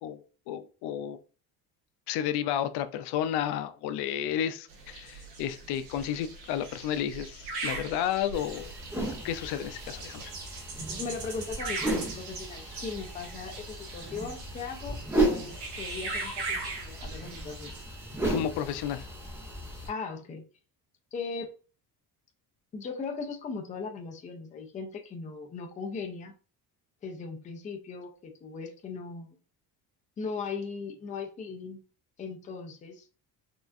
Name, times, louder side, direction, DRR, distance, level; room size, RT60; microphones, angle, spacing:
voice 1, 0.0-1.2 2.1-8.7 9.2-10.3 18.3-19.1, left 10 dB, 85° left, 0.5 m, -32 dB
sound 1, 4.7-17.8, right 3 dB, 80° right, 1.3 m, -40 dB
sound 2, 8.3-19.9, right 2 dB, 5° right, 1.1 m, -35 dB
voice 2, 11.0-17.7 19.8-20.5 21.1-21.5 22.7-26.3 27.0-29.4 30.2-31.8 32.2-33.1, left 5 dB, 20° left, 0.4 m, -38 dB
4.3 x 2.4 x 2.6 m
cardioid pair, 175°, 39 cm